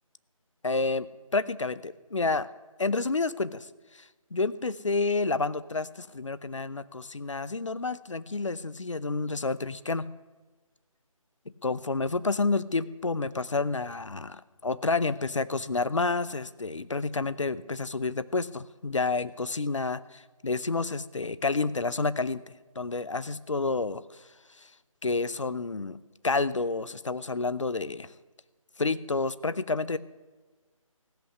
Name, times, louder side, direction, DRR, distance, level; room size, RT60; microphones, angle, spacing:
voice 1, 0.6-2.5 2.8-10.1 11.6-24.3 24.6-24.7 25.0-26.0 26.2-28.1 28.8-30.0, left 3 dB, 60° left, 16 dB, 0.7 m, -29 dB
15.0 x 8.1 x 9.7 m, 1.3 s
figure-of-eight pair, 155°, 18 cm